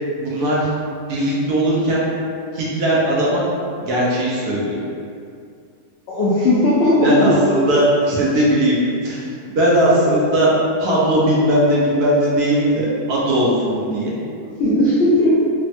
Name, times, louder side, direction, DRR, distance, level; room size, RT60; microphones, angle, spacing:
voice 1, 0.2-0.7 1.1-2.1 2.5-3.5 3.8-4.8 7.0-8.8 9.0-10.5 10.8-14.1, right 1 dB, 75° right, -6 dB, 1.2 m, -18 dB
voice 2, 6.1-7.4 13.9-14.0 14.6-15.5, left 1 dB, 85° left, -9 dB, 0.5 m, -16 dB
3.2 x 2.1 x 2.6 m, 2.3 s
omnidirectional pair, 1.7 m